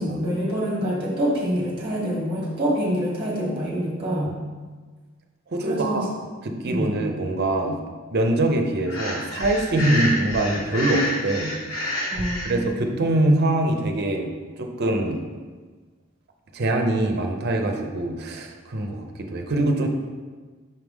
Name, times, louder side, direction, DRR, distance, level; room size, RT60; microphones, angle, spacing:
voice 1, 0.0-4.4 5.6-6.1 6.6-6.9 12.1-12.9, equal, 25° right, -4 dB, 1.4 m, -26 dB
voice 2, 5.5-6.1 6.4-7.8 8.1-11.9 12.4-14.3 14.6-15.2 16.5-19.9, right 1 dB, 55° right, 3 dB, 0.7 m, -23 dB
Breathing, 8.9-12.5, left 1 dB, 90° left, 1.2 m, -28 dB
5.6 x 4.7 x 3.6 m, 1.4 s
head